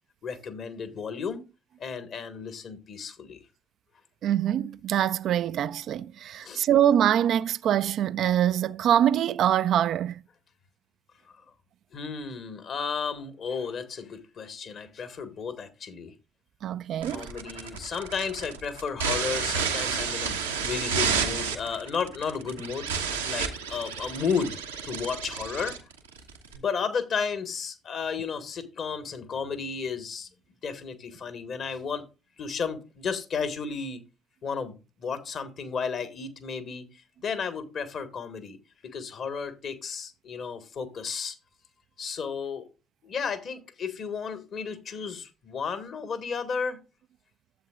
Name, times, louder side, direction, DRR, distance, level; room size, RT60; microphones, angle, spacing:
voice 1, 0.2-1.4 1.8-3.4 6.4-6.7 11.4-11.5 11.9-16.1 17.1-22.9 23.2-24.6 24.8-25.8 26.5-30.3 30.6-32.0 32.4-34.0 34.4-36.9 37.2-38.6 38.8-41.4 42.0-42.7 43.0-46.8, left 6 dB, 55° left, 1.4 m, -33 dB
voice 2, 4.2-10.2 16.6-17.3, right 10 dB, 60° right, 0.3 m, -24 dB
sound 1, 17.0-26.6, right 6 dB, 85° right, 0.9 m, -31 dB
11.0 x 7.8 x 2.4 m
figure-of-eight pair, 50°, 0 cm